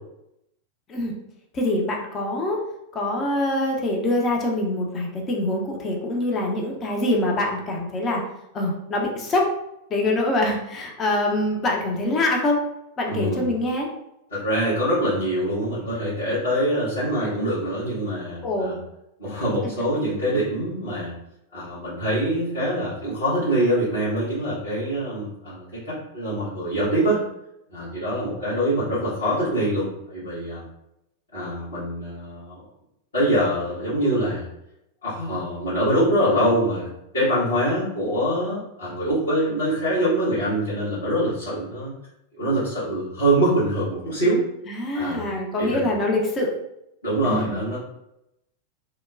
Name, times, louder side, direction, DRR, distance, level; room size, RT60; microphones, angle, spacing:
voice 1, 1.5-2.6 2.9-8.2 8.5-9.5 9.9-12.6 13.0-13.9 18.4-18.8 44.7-46.5 47.2-47.6, left 1 dB, 25° left, -1 dB, 0.5 m, -24 dB
voice 2, 13.1-13.5 14.3-18.8 19.2-21.1 21.5-27.2 27.7-30.6 31.3-32.6 33.1-34.5 35.0-36.9 37.1-41.9 42.4-44.4 44.9-45.2 45.6-45.9 47.0-47.8, right 1 dB, 70° left, -13 dB, 1.4 m, -24 dB
2.9 x 2.1 x 2.4 m, 0.84 s
figure-of-eight pair, 90°, 0 cm